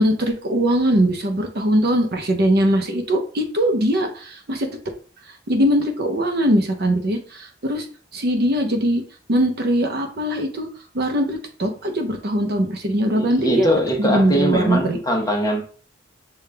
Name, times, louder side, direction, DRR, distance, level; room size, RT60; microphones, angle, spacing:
voice 1, 0.0-4.7 5.5-7.9 8.1-9.0 9.3-10.7 10.9-13.7 14.0-15.0, right 1 dB, 55° right, 5 dB, 0.7 m, -21 dB
voice 2, 13.1-15.6, equal, 20° left, 2 dB, 0.8 m, -21 dB
6.6 x 2.4 x 3.3 m, 0.42 s
head